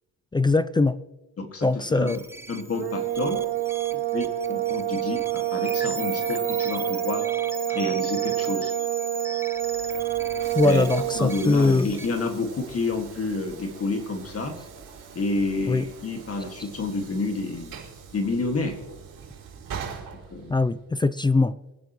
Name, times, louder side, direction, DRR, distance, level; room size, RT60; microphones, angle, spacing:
voice 1, 0.3-1.0 1.6-2.2 10.5-11.9 15.7-15.9 20.5-21.5, left 3 dB, 15° left, 15 dB, 0.3 m, -21 dB
voice 2, 1.4-2.2 2.5-3.4 4.1-7.2 7.7-8.7 10.6-10.9 11.2-14.6 15.1-17.8 18.1-18.8 20.3-20.6, left 3 dB, 40° left, 4 dB, 2.0 m, -29 dB
sound 1, 2.1-12.1, right 1 dB, 5° right, 0.8 m, -38 dB
sound 2, 2.7-11.5, right 13 dB, 90° right, 3.1 m, -27 dB
Train / Sliding door, 9.5-20.9, right 7 dB, 60° right, 4.5 m, -43 dB
24.5 x 9.8 x 3.0 m, 1.1 s
cardioid pair, 110°, 38 cm